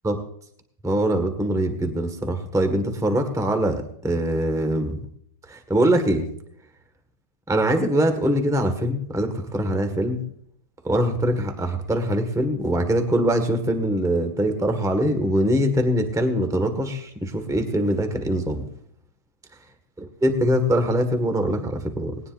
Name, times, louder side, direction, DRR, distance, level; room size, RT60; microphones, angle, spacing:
voice 1, 0.8-5.0 5.5-6.3 7.5-10.2 10.8-18.6 20.0-22.1, right 1 dB, ahead, 7 dB, 1.3 m, -23 dB
19.5 x 18.5 x 2.6 m, 0.66 s
omnidirectional pair, 2.4 m